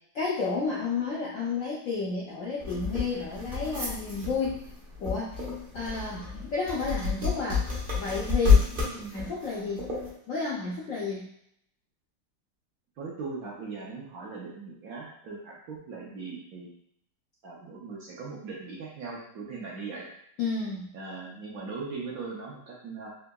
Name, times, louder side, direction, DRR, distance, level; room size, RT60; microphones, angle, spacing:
voice 1, 0.1-4.6 5.0-5.4 5.7-8.7 9.1-9.9 10.3-11.3 20.4-20.9, left 4 dB, 70° left, -5 dB, 0.7 m, -31 dB
sound 1, 2.6-10.1, left 5 dB, 45° right, 0.8 m, -28 dB
voice 2, 8.7-9.3 13.0-16.7 17.4-20.1 20.9-23.1, right 4 dB, 65° right, -3 dB, 1.0 m, -39 dB
3.6 x 2.7 x 2.2 m, 0.72 s
omnidirectional pair, 1.9 m